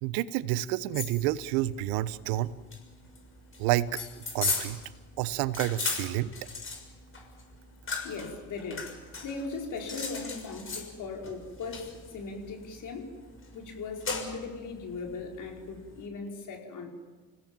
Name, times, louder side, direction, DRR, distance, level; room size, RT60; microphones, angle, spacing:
voice 1, 0.0-2.5 3.6-4.8 5.2-6.3, right 15 dB, 70° right, 18 dB, 1.0 m, -29 dB
sound 1, 0.9-16.1, left 4 dB, 30° left, 6.6 m, -38 dB
voice 2, 8.0-8.9 9.2-13.1 13.5-16.9, left 4 dB, 50° left, 1 dB, 5.2 m, -38 dB
29.0 x 17.0 x 7.5 m, 1.3 s
hypercardioid pair, 60°, 39 cm